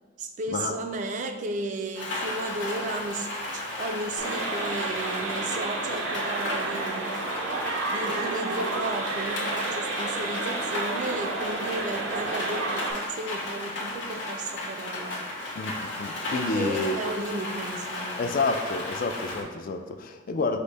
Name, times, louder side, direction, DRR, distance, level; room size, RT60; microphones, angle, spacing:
voice 1, 0.2-7.2 7.9-15.3 16.2-18.4, right 2 dB, 40° right, 6 dB, 0.3 m, -34 dB
Rain, 1.9-19.4, left 2 dB, 60° left, 1.1 m, -34 dB
sound 1, 4.2-12.9, right 3 dB, 80° right, 0.6 m, -31 dB
voice 2, 15.6-17.0 18.2-20.6, left 3 dB, 45° left, 7 dB, 0.3 m, -29 dB
5.1 x 2.1 x 4.0 m, 1.4 s
head